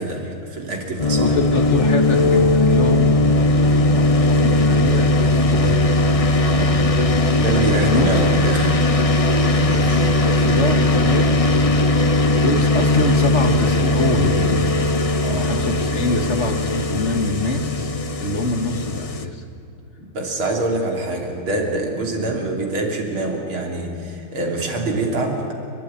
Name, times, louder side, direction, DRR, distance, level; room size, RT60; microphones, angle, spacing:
voice 1, 0.0-1.4 6.5-7.0 7.4-8.9 9.3-10.1 15.2-15.5 20.0-25.5, right 2 dB, 80° right, 1 dB, 3.9 m, -25 dB
sound 1, 1.0-19.2, left 2 dB, 60° left, 0.3 m, -18 dB
voice 2, 1.2-5.9 7.8-8.2 9.6-11.8 12.4-14.7 15.3-17.9 18.2-19.4 22.2-22.3, left 2 dB, 35° left, 5 dB, 1.9 m, -24 dB
29.0 x 12.5 x 10.0 m, 2.8 s
omnidirectional pair, 2.2 m